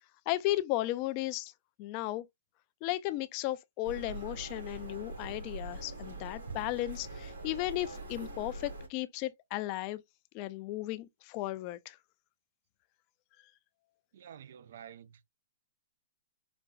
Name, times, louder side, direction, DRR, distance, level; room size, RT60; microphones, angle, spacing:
voice 1, 0.3-1.5 1.8-2.2 2.8-10.0 10.3-12.0, left 16 dB, 40° left, 0.4 m, -35 dB
sound 1, 3.8-8.9, right 2 dB, 80° right, 2.7 m, -43 dB
voice 2, 14.1-15.2, right 9 dB, 65° right, 0.4 m, -50 dB
5.0 x 2.2 x 2.4 m
hypercardioid pair, 130°, 0 cm